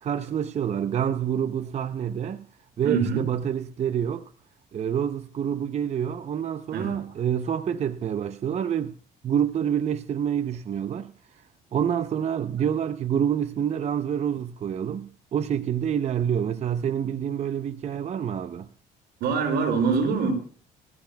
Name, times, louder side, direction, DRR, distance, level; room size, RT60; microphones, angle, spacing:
voice 1, 0.0-2.5 2.8-4.2 4.7-9.0 9.2-11.1 11.7-18.7, right 9 dB, 40° right, 0.7 m, -27 dB
voice 2, 2.8-3.3 6.7-7.2 19.2-20.3, right 5 dB, 80° right, 5.8 m, -25 dB
24.5 x 15.0 x 2.3 m
cardioid pair, 110°, 17 cm